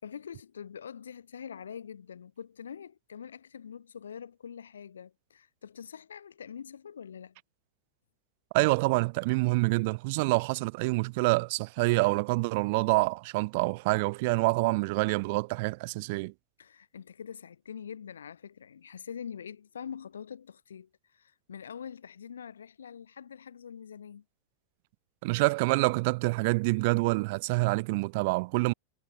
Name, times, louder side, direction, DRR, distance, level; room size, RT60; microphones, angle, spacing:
voice 1, 0.0-7.4 16.6-24.2, left 7 dB, 70° left, 7.6 m, -44 dB
voice 2, 8.5-16.3 25.2-28.7, right 25 dB, 50° right, 1.8 m, -27 dB
figure-of-eight pair, 90°, 0 cm